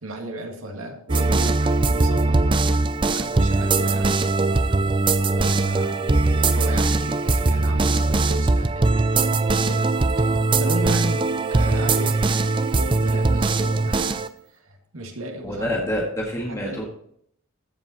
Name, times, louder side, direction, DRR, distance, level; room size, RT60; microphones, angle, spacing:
voice 1, 0.0-4.5 5.2-6.2 6.5-8.9 9.2-9.9 10.2-12.3 12.7-14.2 14.5-15.7 16.4-16.9, right 1 dB, 80° right, 2 dB, 1.9 m, -35 dB
sound 1, 1.1-14.3, right 3 dB, 20° right, 0.4 m, -21 dB
voice 2, 15.4-16.9, equal, 15° left, -3 dB, 1.8 m, -27 dB
14.5 x 5.4 x 4.3 m, 0.69 s
head